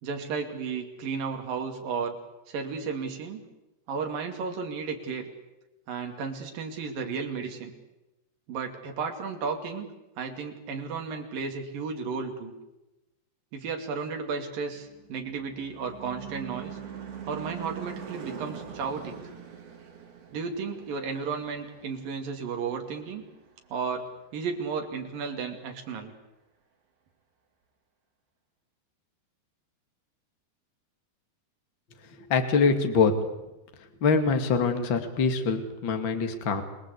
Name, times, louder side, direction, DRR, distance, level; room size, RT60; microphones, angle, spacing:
voice 1, 0.0-2.2 2.5-3.4 3.9-5.3 5.9-7.7 8.5-9.9 10.2-12.5 13.5-16.8 17.3-19.3 20.3-23.2 23.7-24.0 24.3-26.1, right 5 dB, 55° right, 4 dB, 4.1 m, -33 dB
Car passing by / Truck / Engine, 14.7-23.4, right 9 dB, 75° right, 6.0 m, -43 dB
voice 2, 32.3-33.1 34.0-36.6, left 5 dB, 35° left, 6 dB, 2.1 m, -24 dB
28.5 x 19.5 x 8.4 m, 0.99 s
omnidirectional pair, 5.0 m